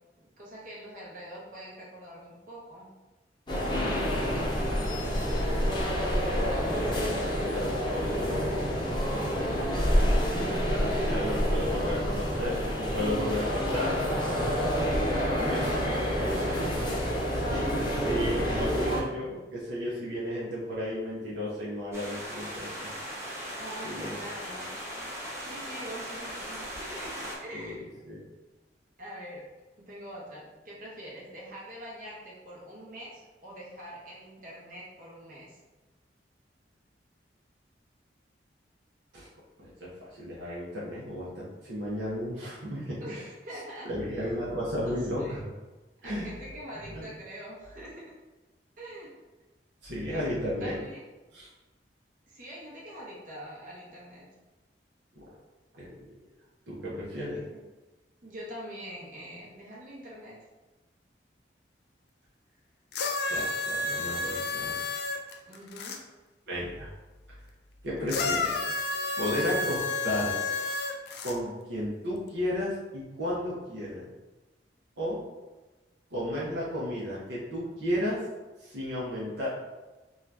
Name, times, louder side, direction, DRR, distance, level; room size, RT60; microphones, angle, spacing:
voice 1, 0.4-2.9 3.7-4.5 15.9-16.6 16.9-17.1 23.6-24.7 25.4-27.9 29.0-29.4 29.8-35.6 43.0-44.3 44.9-45.4 46.0-48.0 48.8-49.1 50.1-50.2 50.6-51.0 52.3-54.3 57.1-57.2 57.5-57.6 58.2-60.4 65.5-66.0, equal, 50° right, -6 dB, 0.9 m, -44 dB
sound 1, 3.5-19.0, equal, 25° left, 0.6 m, -28 dB
voice 2, 6.7-8.7 9.1-9.6 10.5-14.0 14.9-15.9 16.6-17.0 17.5-22.9 23.8-24.2 27.5-27.8 28.1-28.2 39.1-39.3 39.6-43.2 43.8-45.5 46.0-46.3 46.7-47.1 49.8-50.8 51.3-51.5 55.2-55.3 55.8-56.1 56.7-57.4 63.3-64.8 66.5-66.9 67.3-67.4 67.8-68.7 69.2-70.6 71.2-74.1 75.0-75.2 76.1-78.2 78.6-79.5, left 1 dB, 75° right, -7 dB, 0.7 m, -34 dB
sound 2, 21.9-27.4, equal, 15° right, 0.6 m, -38 dB
sound 3, 62.9-66.0 68.1-71.4 72.3-72.4, left 3 dB, 65° left, 0.4 m, -31 dB
2.7 x 2.4 x 3.3 m, 1.2 s
head